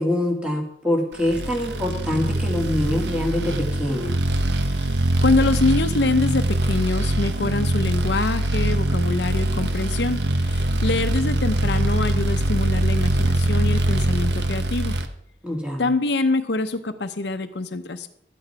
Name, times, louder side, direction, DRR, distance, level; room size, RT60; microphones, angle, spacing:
voice 1, 0.0-4.2 15.4-15.9, left 1 dB, 5° right, 0 dB, 2.2 m, -25 dB
sound 1, 1.3-15.1, right 1 dB, 75° right, 1.0 m, -23 dB
voice 2, 5.2-14.9 15.8-18.1, left 3 dB, 75° left, 9 dB, 0.7 m, -25 dB
12.5 x 8.9 x 4.7 m, 0.72 s
head